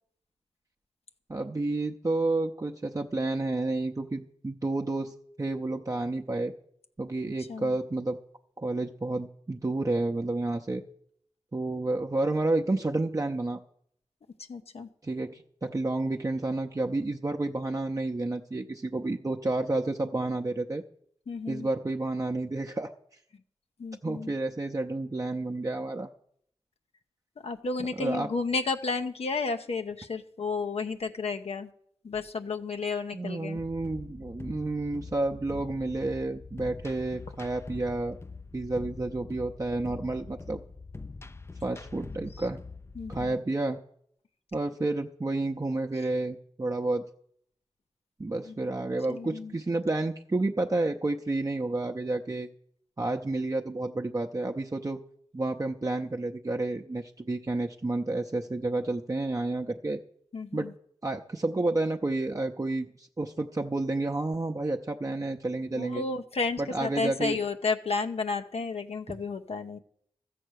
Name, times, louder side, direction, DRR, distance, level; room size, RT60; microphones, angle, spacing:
voice 1, 1.3-6.5 7.0-8.2 8.6-10.8 11.5-13.6 15.0-20.8 21.5-22.9 24.0-26.1 28.0-28.3 33.1-38.2 38.5-40.6 41.6-42.6 43.1-43.8 44.5-47.0 48.2-52.5 53.0-55.0 55.3-60.0 60.5-60.7 61.0-66.0 66.6-67.4, right 2 dB, 30° right, 2 dB, 0.7 m, -30 dB
voice 2, 14.5-14.9 21.3-21.7 23.8-24.3 27.4-31.7 32.0-33.6 42.4-42.5 43.0-43.4 48.5-48.6 49.1-49.6 60.3-60.7 65.8-69.8, left 4 dB, 70° left, 6 dB, 0.8 m, -32 dB
sound 1, 33.5-43.3, left 3 dB, 25° left, 0.5 m, -44 dB
13.0 x 7.7 x 6.4 m, 0.66 s
cardioid pair, 40°, 11 cm